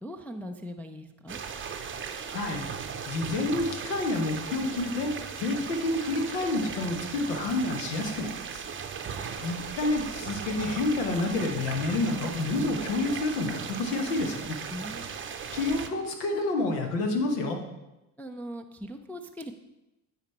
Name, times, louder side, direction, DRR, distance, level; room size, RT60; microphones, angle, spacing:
voice 1, 0.0-1.4 14.7-15.2 18.2-19.6, equal, 5° left, 3 dB, 0.3 m, -40 dB
sound 1, 1.3-15.9, right 6 dB, 25° right, 0.7 m, -37 dB
voice 2, 2.3-2.6 3.1-8.6 9.4-14.6 15.5-17.6, left 2 dB, 80° left, 3 dB, 1.3 m, -29 dB
9.2 x 4.1 x 4.4 m, 0.95 s
hypercardioid pair, 65°, 47 cm